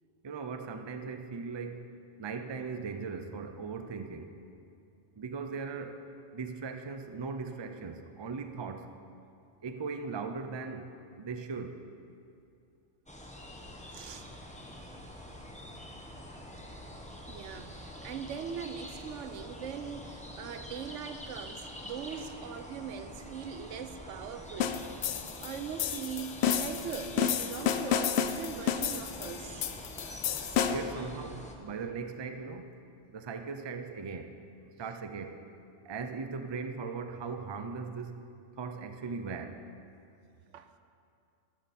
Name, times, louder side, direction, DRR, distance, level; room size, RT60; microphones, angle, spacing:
voice 1, 0.2-1.9 2.2-4.4 5.2-6.0 6.3-9.0 9.6-11.8 30.6-32.7 33.1-34.3 34.8-35.4 35.8-38.2 38.6-39.6, right 4 dB, 30° right, 7 dB, 0.5 m, -39 dB
sound 1, 13.1-31.5, equal, 5° left, 0.9 m, -46 dB
voice 2, 13.9-14.3 17.2-29.7 40.5-40.7, right 7 dB, 80° right, 10 dB, 1.0 m, -41 dB
sound 2, 24.6-31.0, left 8 dB, 65° left, 0.8 m, -31 dB
13.5 x 12.5 x 4.2 m, 2.5 s
omnidirectional pair, 1.3 m